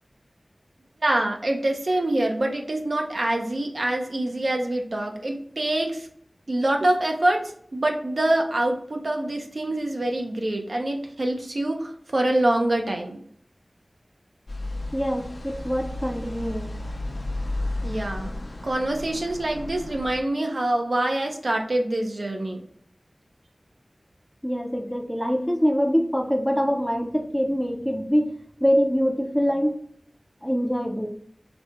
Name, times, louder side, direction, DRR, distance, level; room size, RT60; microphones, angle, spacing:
voice 1, 1.0-6.1 6.5-13.2 17.8-18.3 18.6-22.6, right 1 dB, 65° right, 2 dB, 0.6 m, -25 dB
sound 1, 14.5-20.2, left 1 dB, 70° left, 0.5 m, -33 dB
voice 2, 14.9-16.7 24.4-28.2 28.6-29.8 30.4-31.2, equal, ahead, 3 dB, 0.5 m, -24 dB
4.1 x 2.2 x 2.9 m, 0.63 s
wide cardioid pair, 60°, 0 cm